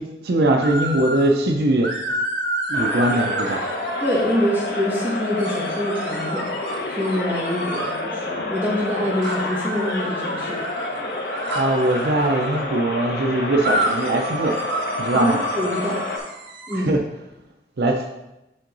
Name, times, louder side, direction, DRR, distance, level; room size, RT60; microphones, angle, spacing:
voice 1, 0.0-1.9 2.7-3.6 11.5-14.6 15.0-15.4 16.9-17.0 17.8-18.1, right 1 dB, 65° right, 3 dB, 0.5 m, -21 dB
sound 1, 0.6-1.3 1.8-4.6 5.4-8.0 9.2-12.6 13.6-16.8, right 1 dB, 90° right, 1.2 m, -30 dB
sound 2, 2.7-16.2, left 2 dB, 65° left, 0.9 m, -29 dB
voice 2, 4.0-6.5 6.9-10.6 15.1-16.0 16.7-16.9, left 1 dB, 10° right, -6 dB, 1.6 m, -25 dB
7.6 x 3.7 x 3.9 m, 0.93 s
head